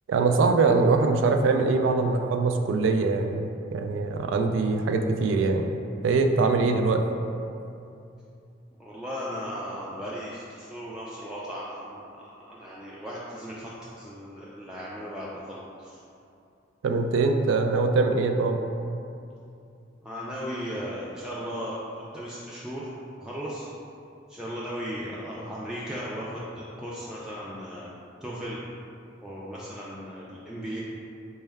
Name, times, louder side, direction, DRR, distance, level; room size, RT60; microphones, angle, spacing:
voice 1, 0.1-5.8 6.0-7.0 16.8-18.6, right 3 dB, 85° right, 5 dB, 0.3 m, -23 dB
voice 2, 8.8-13.7 14.0-16.0 20.0-22.9 23.2-23.7 24.3-27.9 28.2-28.6 29.2-30.8, equal, 5° right, -8 dB, 0.3 m, -36 dB
4.4 x 2.2 x 3.3 m, 2.6 s
head